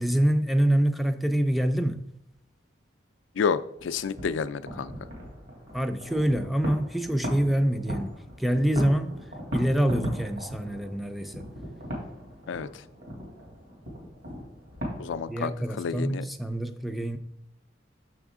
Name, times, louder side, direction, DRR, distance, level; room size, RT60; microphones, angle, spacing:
voice 1, 0.0-2.0 5.7-9.2 9.5-11.4 15.3-17.2, right 1 dB, ahead, 0.4 m, -26 dB
voice 2, 3.4-4.9 12.5-12.7 15.0-16.2, left 6 dB, 80° left, 0.4 m, -30 dB
sound 1, 3.8-15.3, equal, 60° right, 2.5 m, -38 dB
6.6 x 6.1 x 3.6 m
head